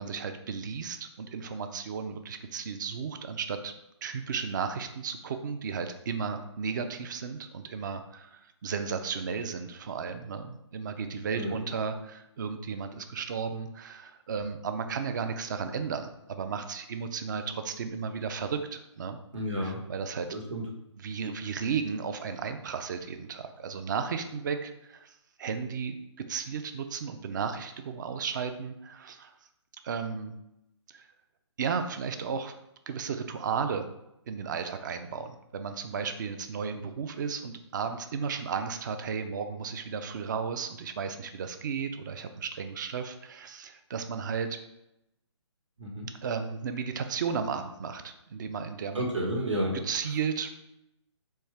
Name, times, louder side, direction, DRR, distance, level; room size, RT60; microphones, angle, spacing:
voice 1, 0.0-3.7 4.0-19.2 19.6-20.3 21.0-29.3 29.8-30.3 30.9-31.1 31.6-32.5 32.9-33.9 34.3-44.6 46.2-49.1 49.8-50.5, right 6 dB, 40° right, 8 dB, 0.4 m, -34 dB
voice 2, 19.3-19.8 20.3-20.6 45.8-46.1 48.9-49.8, equal, 75° right, 0 dB, 1.3 m, -31 dB
4.3 x 2.4 x 3.2 m, 0.85 s
hypercardioid pair, 150°, 16 cm